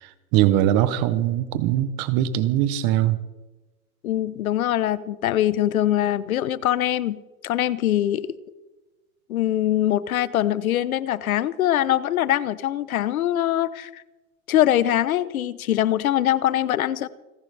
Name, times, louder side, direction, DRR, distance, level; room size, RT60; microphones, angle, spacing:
voice 1, 0.0-3.2, right 12 dB, 25° right, 0.8 m, -21 dB
voice 2, 4.0-8.3 9.3-14.0 14.5-17.1, left 12 dB, 90° left, 0.9 m, -23 dB
29.0 x 11.0 x 3.4 m
supercardioid pair, 160°, 41 cm